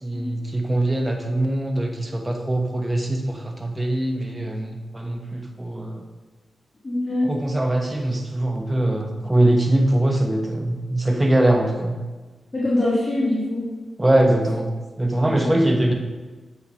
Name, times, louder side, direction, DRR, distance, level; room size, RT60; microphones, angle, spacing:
voice 1, 0.0-6.0 7.3-11.9 14.0-14.7 15.0-15.9, right 1 dB, 20° right, 2 dB, 1.1 m, -22 dB
voice 2, 6.8-7.3 12.5-13.7 15.3-15.5, left 1 dB, 30° left, -7 dB, 1.9 m, -23 dB
8.0 x 5.6 x 3.0 m, 1.3 s
supercardioid pair, 40°, 0 cm